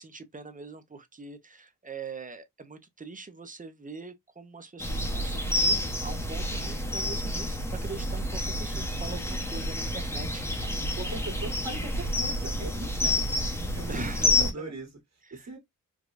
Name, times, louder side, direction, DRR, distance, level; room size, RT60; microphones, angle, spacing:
voice 1, 0.0-11.1 13.0-13.2 13.9-14.8 15.3-15.5, right 4 dB, 25° right, 0.5 m, -42 dB
sound 1, 4.8-14.5, left 1 dB, 5° left, 0.8 m, -29 dB
voice 2, 10.9-13.2 13.5-14.0 14.3-14.9 15.3-15.6, right 2 dB, 50° right, 1.5 m, -39 dB
4.7 x 2.2 x 2.4 m
wide cardioid pair, 150°, 35 cm